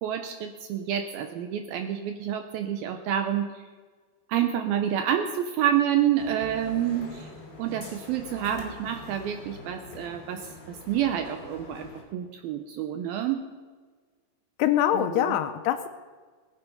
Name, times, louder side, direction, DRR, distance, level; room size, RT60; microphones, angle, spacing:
voice 1, 0.0-3.6 4.3-7.3 7.6-13.5 14.9-15.3, right 10 dB, 80° right, 6 dB, 2.2 m, -28 dB
sound 1, 6.2-12.0, left 3 dB, 30° left, 2.9 m, -44 dB
voice 2, 14.6-15.9, left 11 dB, 80° left, 10 dB, 2.5 m, -24 dB
20.0 x 9.3 x 5.5 m, 1.5 s
omnidirectional pair, 5.0 m